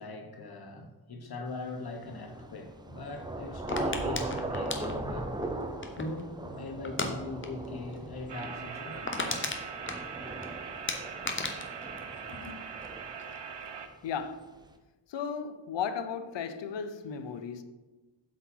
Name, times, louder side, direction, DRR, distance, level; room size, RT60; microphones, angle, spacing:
voice 1, 0.0-5.3 5.9-9.6 12.3-12.6, left 2 dB, 60° left, 1.1 m, -41 dB
Thunder / Rain, 2.1-13.7, right 2 dB, 10° right, 0.5 m, -39 dB
sound 1, 3.7-6.2 6.8-7.1 7.4-7.7 7.9-8.0 8.4-8.5 8.8-10.5 10.9-12.9 13.2-13.6, left 3 dB, 30° left, 0.8 m, -35 dB
sound 2, 8.3-13.9, right 6 dB, 75° right, 0.8 m, -41 dB
voice 2, 14.0-14.5 15.1-17.6, left 7 dB, 80° left, 0.7 m, -35 dB
7.6 x 4.7 x 5.6 m
wide cardioid pair, 135°, 43 cm